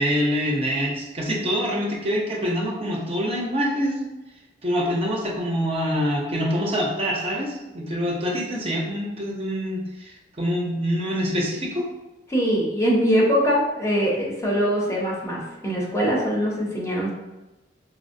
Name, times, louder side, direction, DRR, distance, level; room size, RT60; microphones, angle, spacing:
voice 1, 0.0-4.0 4.6-11.9, equal, 35° right, -2 dB, 0.5 m, -25 dB
voice 2, 12.3-17.1, equal, 15° left, -4 dB, 0.6 m, -22 dB
4.2 x 2.1 x 2.5 m, 1.0 s
head